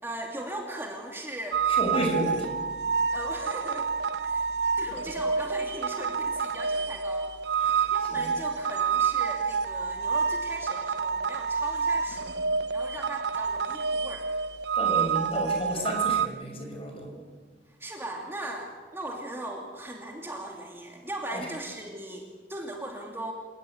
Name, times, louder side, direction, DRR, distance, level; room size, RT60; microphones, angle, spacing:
voice 1, 0.0-1.6 2.3-2.4 3.1-3.9 4.2-4.4 4.8-7.3 7.6-12.3 12.7-14.2 17.8-23.3, right 1 dB, 15° right, 0 dB, 2.7 m, -38 dB
sound 1, 1.5-16.3, right 6 dB, 70° right, 1.0 m, -28 dB
voice 2, 1.7-2.5 7.6-8.3 14.7-17.2 21.3-21.5, equal, 35° left, 3 dB, 6.0 m, -32 dB
27.5 x 18.5 x 9.3 m, 1.5 s
head